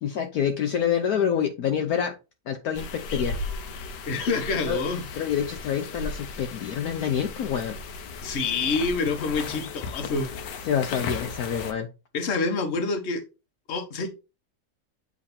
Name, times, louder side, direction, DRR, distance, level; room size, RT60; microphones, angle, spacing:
voice 1, 0.0-2.1 2.5-3.4 4.6-4.8 5.2-7.8 10.7-11.9, left 8 dB, 70° left, 1.2 m, -27 dB
sound 1, 2.7-11.7, left 4 dB, 85° left, 1.5 m, -36 dB
voice 2, 4.1-5.0 8.2-10.3 12.1-13.2 13.7-14.1, left 4 dB, 45° left, 1.2 m, -27 dB
8.2 x 3.2 x 4.1 m
omnidirectional pair, 1.8 m